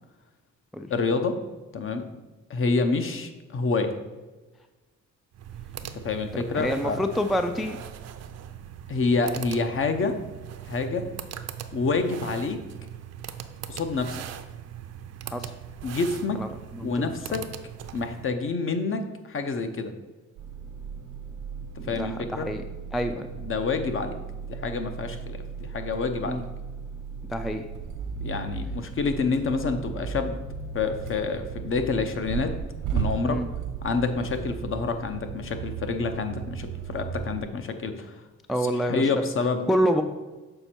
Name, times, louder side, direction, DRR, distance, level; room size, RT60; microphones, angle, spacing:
voice 1, 0.9-1.4 1.7-2.1 2.5-3.9 5.9-7.0 8.9-10.2 10.7-11.1 11.7-12.6 13.7-14.2 15.8-16.4 16.8-17.5 17.9-19.9 21.9-22.5 23.4-24.2 24.5-26.4 28.2-30.4 30.7-32.5 32.9-33.4 33.8-38.2 38.6-39.7, left 4 dB, 45° left, 7 dB, 0.8 m, -28 dB
sound 1, 5.3-18.3, right 9 dB, 55° right, 0.6 m, -40 dB
voice 2, 6.3-7.8 15.3-15.5 16.4-16.5 16.8-16.9 21.8-22.6 22.9-23.3 26.3-26.4 27.3-27.7 33.2-33.5 38.5-39.2 39.7-40.0, equal, ahead, 7 dB, 0.3 m, -27 dB
sound 2, 20.4-37.4, right 6 dB, 90° right, 1.1 m, -36 dB
6.7 x 4.3 x 4.4 m, 1.2 s
cardioid pair, 90°, 30 cm